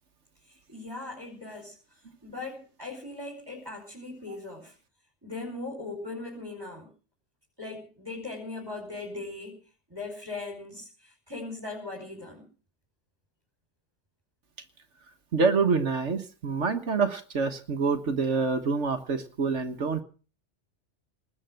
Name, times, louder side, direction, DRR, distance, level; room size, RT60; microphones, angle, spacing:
voice 1, 0.5-1.7 2.2-4.7 5.2-6.9 7.6-9.6 9.9-12.4, left 3 dB, 20° right, -2 dB, 5.2 m, -39 dB
voice 2, 15.3-20.0, right 4 dB, 80° right, 7 dB, 1.7 m, -26 dB
20.0 x 7.4 x 9.1 m, 0.38 s
omnidirectional pair, 1.2 m